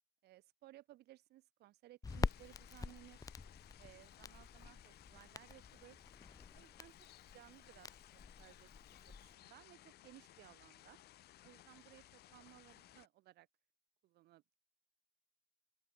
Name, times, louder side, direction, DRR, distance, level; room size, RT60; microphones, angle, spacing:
voice 1, 0.2-3.3 3.8-6.0 6.5-6.9 7.3-11.0 11.4-13.5 14.0-14.6, right 16 dB, 75° right, 1.9 m, -61 dB
Crackle, 2.0-9.3, left 4 dB, 20° left, 1.4 m, -46 dB
sound 1, 2.1-13.1, left 14 dB, 75° left, 4.8 m, -61 dB
open air
cardioid pair, 110°, 17 cm